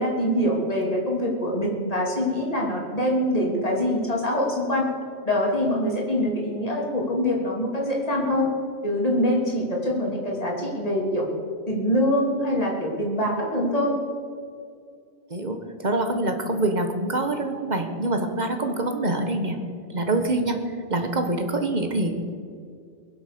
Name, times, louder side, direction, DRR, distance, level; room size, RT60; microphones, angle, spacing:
voice 1, 0.0-4.9 5.2-8.5 8.8-11.3 11.7-14.0, equal, 35° left, -2 dB, 3.0 m, -24 dB
voice 2, 15.3-19.6 19.9-20.6 20.9-22.2, right 2 dB, 40° right, 5 dB, 1.4 m, -25 dB
21.5 x 7.9 x 6.8 m, 2.2 s
omnidirectional pair, 1.2 m